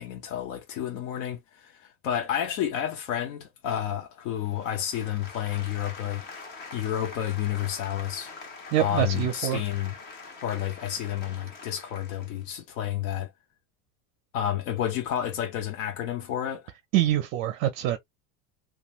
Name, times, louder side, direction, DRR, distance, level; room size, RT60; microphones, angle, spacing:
voice 1, 0.0-6.2 6.7-8.3 8.8-9.9 10.4-13.3 14.3-16.7, left 10 dB, 70° left, 0.8 m, -30 dB
sound 1, 4.4-12.5, left 4 dB, 25° left, 0.5 m, -44 dB
voice 2, 8.7-9.6 16.9-18.0, right 13 dB, 45° right, 0.5 m, -25 dB
2.5 x 2.3 x 2.9 m
cardioid pair, 170°, 40 cm